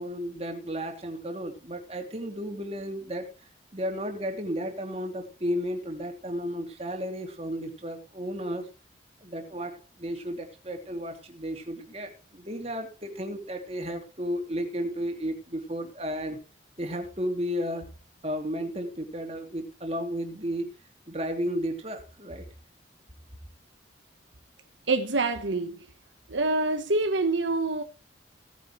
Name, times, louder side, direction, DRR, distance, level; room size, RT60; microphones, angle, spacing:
voice 1, 0.0-3.3 3.7-8.7 9.2-16.4 16.8-17.9 18.2-20.7 21.1-22.4, equal, 30° right, 2.9 m, -33 dB
voice 2, 24.9-25.9 26.3-27.8, right 3 dB, 75° right, 1.3 m, -26 dB
17.5 x 9.4 x 3.3 m
head